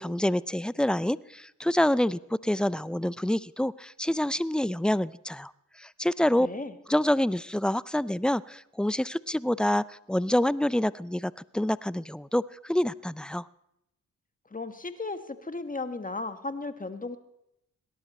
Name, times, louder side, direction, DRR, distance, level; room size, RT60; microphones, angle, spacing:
voice 1, 0.0-5.5 5.8-6.5 6.9-13.5, left 1 dB, 5° left, 19 dB, 0.4 m, -27 dB
voice 2, 6.4-6.8 14.5-17.2, left 3 dB, 25° left, 9 dB, 1.5 m, -35 dB
18.0 x 11.5 x 4.3 m, 0.82 s
hypercardioid pair, 40°, 35 cm